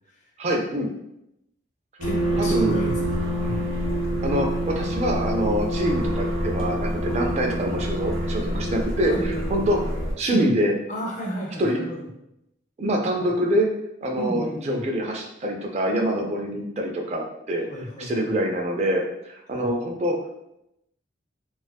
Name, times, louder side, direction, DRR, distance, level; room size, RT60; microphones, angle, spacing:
voice 1, 0.4-0.9 2.4-2.8 4.2-9.8 10.2-10.7 11.6-11.8 12.8-13.7 14.0-17.7 18.0-20.2, equal, 35° right, 2 dB, 0.3 m, -25 dB
voice 2, 2.0-3.8 7.0-7.2 9.0-9.7 10.2-10.6 10.9-12.1 13.2-13.3 14.2-14.9 17.7-18.4 19.5-19.7, equal, 40° left, -1 dB, 0.5 m, -33 dB
sound 1, 2.0-10.1, right 1 dB, 90° right, 0.7 m, -26 dB
2.5 x 2.3 x 2.2 m, 0.83 s
head